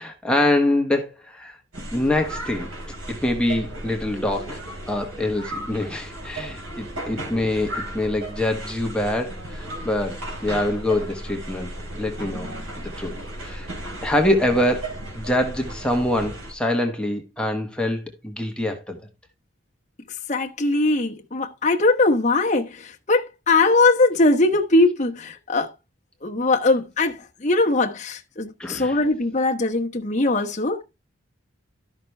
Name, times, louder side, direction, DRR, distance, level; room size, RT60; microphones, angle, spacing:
voice 1, 0.0-1.6 1.9-2.7 3.1-4.6 4.9-11.7 12.0-12.5 13.0-13.2 13.4-13.7 14.0-19.0 28.6-29.0, left 1 dB, 5° left, 1.2 m, -24 dB
sound 1, 1.7-16.5, right 1 dB, 85° right, 3.1 m, -35 dB
voice 2, 20.3-25.7 26.2-30.8, left 2 dB, 35° left, 1.1 m, -21 dB
12.5 x 5.9 x 3.3 m
head